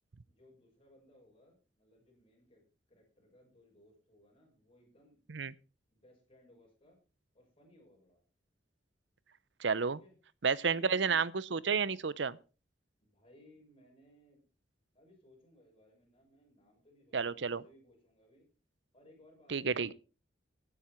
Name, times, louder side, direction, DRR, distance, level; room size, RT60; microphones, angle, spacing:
voice 1, 0.3-2.6 2.9-5.2 5.9-7.0 7.3-8.2 9.9-10.1 10.6-11.2 13.0-14.4 14.9-18.5 18.9-19.7, left 1 dB, 30° left, 7.0 m, -62 dB
voice 2, 9.6-10.0 10.4-12.4 17.1-17.6 19.5-19.9, right 5 dB, 70° right, 0.7 m, -31 dB
16.0 x 9.9 x 4.5 m
head